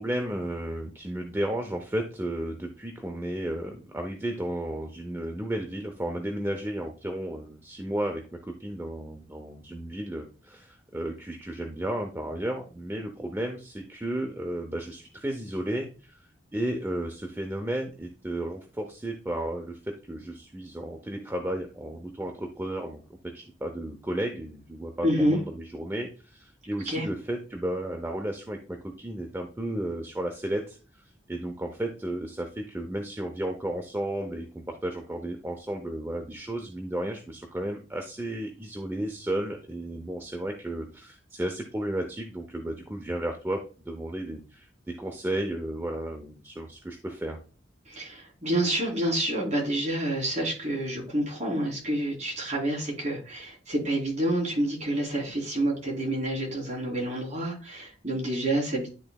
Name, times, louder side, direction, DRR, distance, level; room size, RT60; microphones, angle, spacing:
voice 1, 0.0-16.2 16.5-47.4, right 1 dB, 10° right, 3 dB, 0.6 m, -33 dB
voice 2, 25.0-25.4 26.9-27.1 47.9-58.9, right 1 dB, 40° right, -2 dB, 2.8 m, -28 dB
10.5 x 3.9 x 2.3 m, 0.37 s
head